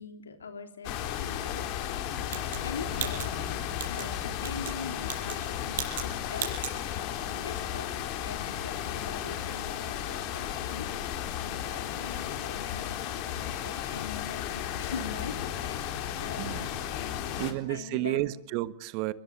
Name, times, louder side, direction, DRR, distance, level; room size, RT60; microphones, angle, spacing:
voice 1, 0.0-1.7 2.3-3.2 3.9-6.5 7.3-7.9 8.2-10.9 11.1-12.8 13.1-16.7 16.9-18.3, left 5 dB, 90° left, 3.3 m, -43 dB
sound 1, 0.8-17.5, left 10 dB, 50° left, 3.7 m, -34 dB
sound 2, 2.3-4.1 4.4-4.8 5.0-5.4 5.7-6.1 6.3-6.8, right 10 dB, 70° right, 7.5 m, -36 dB
voice 2, 16.4-16.7 17.4-19.1, right 17 dB, 50° right, 1.4 m, -31 dB
22.5 x 22.0 x 8.1 m
hypercardioid pair, 110°, 0 cm